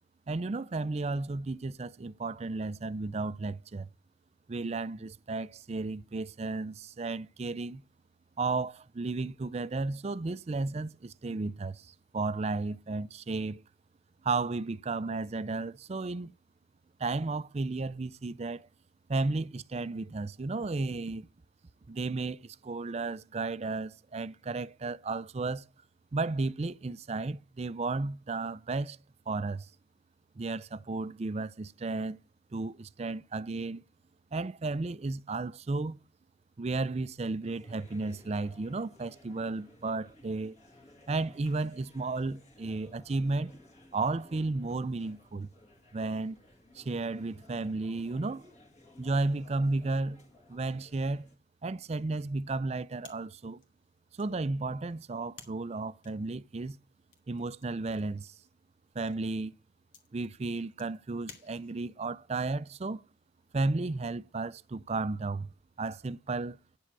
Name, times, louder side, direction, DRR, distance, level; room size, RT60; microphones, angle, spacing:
voice 1, 0.3-3.9 4.5-7.8 8.4-13.6 14.2-16.3 17.0-18.7 19.1-21.3 21.9-25.6 26.1-29.0 29.3-29.7 30.4-32.2 32.5-33.8 34.3-36.0 36.6-40.6 41.1-43.6 43.9-45.5 45.9-46.4 46.7-48.4 49.0-50.2 50.5-51.3 51.6-53.6 54.2-56.8 57.3-58.3 59.0-59.5 60.1-63.0 63.5-65.5 65.8-66.6, right 3 dB, 35° right, 0.4 m, -33 dB
sound 1, 37.4-51.4, left 1 dB, 40° left, 2.0 m, -58 dB
sound 2, 53.0-62.0, left 6 dB, 90° left, 2.5 m, -58 dB
10.0 x 7.4 x 4.6 m
head